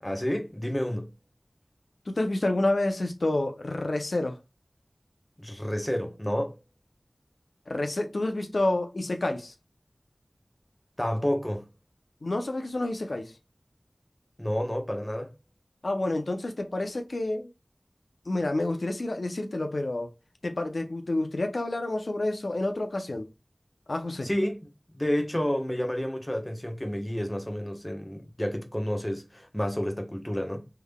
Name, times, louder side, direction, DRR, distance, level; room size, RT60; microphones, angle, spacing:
voice 1, 0.0-1.1 5.4-6.6 11.0-11.7 14.4-15.3 24.2-24.7 24.9-30.7, equal, 15° left, 0.8 m, -30 dB
voice 2, 2.1-4.4 7.7-9.5 12.2-13.3 15.8-17.5 18.3-20.1 20.4-23.3 23.9-24.3, left 2 dB, 80° left, 0.5 m, -29 dB
3.6 x 3.3 x 2.2 m
wide cardioid pair, 50°, 0 cm